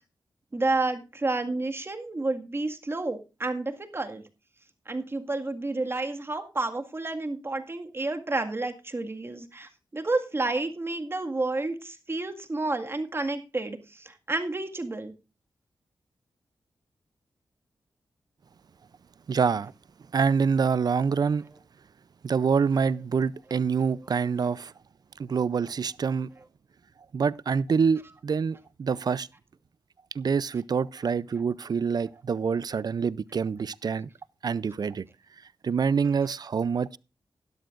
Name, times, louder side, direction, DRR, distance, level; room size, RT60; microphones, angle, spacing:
voice 1, 0.5-4.2 4.9-15.1 36.2-36.3, right 2 dB, 30° right, 1.9 m, -30 dB
voice 2, 19.3-19.7 20.1-21.4 22.2-24.7 25.2-26.3 27.1-29.3 30.1-34.1 34.4-35.1 35.6-37.0, right 6 dB, 55° right, 0.5 m, -26 dB
16.5 x 12.0 x 2.5 m
wide cardioid pair, 90°, 8 cm